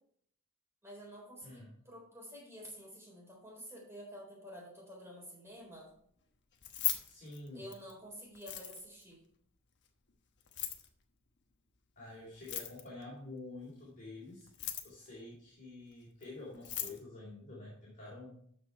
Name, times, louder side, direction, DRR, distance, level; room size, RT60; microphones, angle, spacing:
voice 1, 0.8-5.9 7.5-9.2, equal, 10° right, -3 dB, 4.0 m, -50 dB
Keys jangling, 6.5-7.9 8.4-9.0 10.4-10.9 12.4-13.0 14.4-15.1 16.2-16.3 16.5-17.0, left 12 dB, 50° left, 1.2 m, -38 dB
voice 2, 7.0-7.7 12.0-14.5 14.8-18.4, left 2 dB, 35° left, -6 dB, 3.4 m, -48 dB
13.0 x 5.2 x 4.7 m, 0.63 s
head